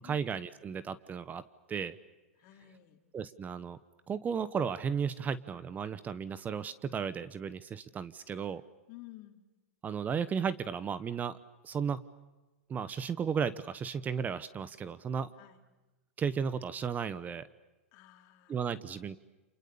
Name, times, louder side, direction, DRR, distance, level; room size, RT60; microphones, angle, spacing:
voice 1, 0.0-1.4 1.7-2.0 3.1-3.8 4.1-8.6 9.8-11.4 11.6-12.0 12.7-15.3 16.2-17.5 18.5-19.2, right 6 dB, 20° right, 15 dB, 1.0 m, -34 dB
voice 2, 2.4-3.0 8.9-9.4 15.4-15.6 17.9-18.8, left 16 dB, 45° left, 5 dB, 3.5 m, -53 dB
30.0 x 28.0 x 7.0 m, 1.1 s
hypercardioid pair, 110°, 8 cm